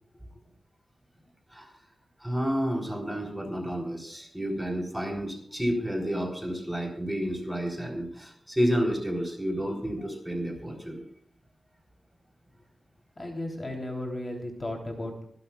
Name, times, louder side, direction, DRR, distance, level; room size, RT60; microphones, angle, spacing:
voice 1, 2.2-11.0, equal, 5° right, 1 dB, 3.8 m, -30 dB
voice 2, 13.2-15.2, left 1 dB, 30° left, 1 dB, 3.3 m, -35 dB
24.5 x 12.0 x 2.4 m, 0.65 s
wide cardioid pair, 120°, 0 cm